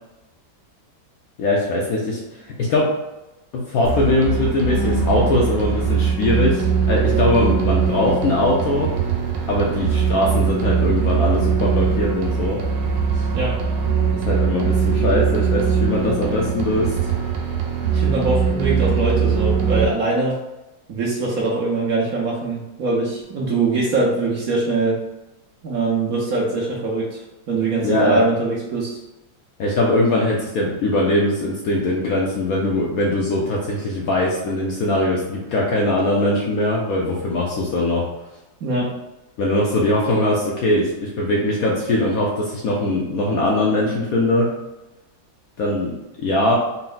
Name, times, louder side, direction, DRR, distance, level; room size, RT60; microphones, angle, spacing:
voice 1, 1.4-2.2 2.6-2.9 3.5-8.9 9.5-12.6 13.1-13.3 14.1-16.9 27.8-28.2 29.6-38.0 39.4-44.5 45.6-46.6, left 1 dB, 70° left, -3 dB, 0.9 m, -21 dB
sound 1, 3.8-19.8, right 6 dB, 85° right, 1.3 m, -21 dB
voice 2, 17.9-20.4 20.9-25.0 25.6-27.2 27.5-29.0 38.6-38.9, right 3 dB, 60° right, -4 dB, 1.0 m, -22 dB
4.2 x 2.1 x 3.8 m, 0.99 s
omnidirectional pair, 2.0 m